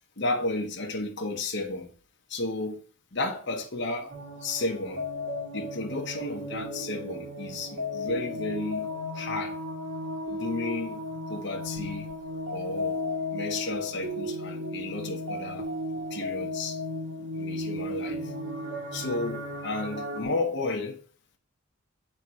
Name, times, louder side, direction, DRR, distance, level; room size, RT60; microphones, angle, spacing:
voice 1, 0.2-1.9 2.3-5.1 5.5-9.6 10.3-11.0 11.3-12.1 12.5-13.0 13.3-15.7 16.1-16.8 17.2-18.3 18.9-21.0, left 2 dB, 55° left, 1.0 m, -33 dB
sound 1, 4.1-20.2, left 1 dB, 80° right, 2.3 m, -35 dB
7.8 x 3.7 x 5.4 m
head